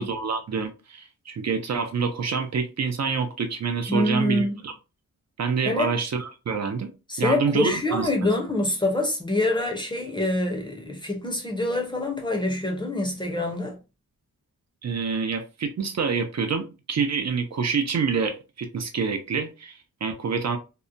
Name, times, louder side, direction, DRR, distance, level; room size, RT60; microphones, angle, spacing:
voice 1, 0.0-4.7 5.4-6.9 7.2-8.3 14.8-20.6, right 5 dB, 55° right, 0.4 m, -27 dB
voice 2, 3.9-4.6 5.6-5.9 7.1-13.8, left 1 dB, 15° left, 0.6 m, -25 dB
2.7 x 2.1 x 2.5 m
wide cardioid pair, 145°, 33 cm